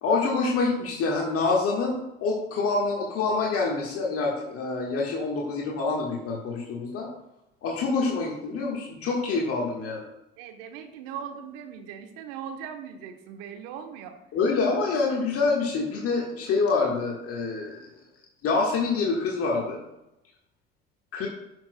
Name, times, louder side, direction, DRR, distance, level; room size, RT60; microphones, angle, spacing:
voice 1, 0.0-2.0 2.2-7.1 7.6-10.0 14.3-17.9 18.4-19.8 21.1-21.3, left 4 dB, 50° left, -1 dB, 1.5 m, -26 dB
voice 2, 10.4-14.1, right 8 dB, 65° right, 6 dB, 1.0 m, -39 dB
12.0 x 6.3 x 2.2 m, 0.90 s
hypercardioid pair, 60°, 30 cm